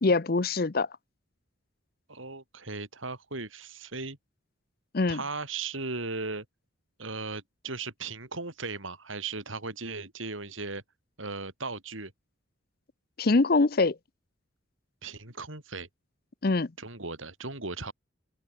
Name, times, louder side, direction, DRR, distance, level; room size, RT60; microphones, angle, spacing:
voice 1, 0.0-0.9 4.9-5.2 13.2-13.9 16.4-16.7, left 3 dB, 50° left, 0.7 m, -23 dB
voice 2, 2.1-4.2 5.1-6.4 7.0-10.8 11.2-12.1 15.0-15.9 16.8-17.9, right 3 dB, 85° right, 5.0 m, -37 dB
open air
head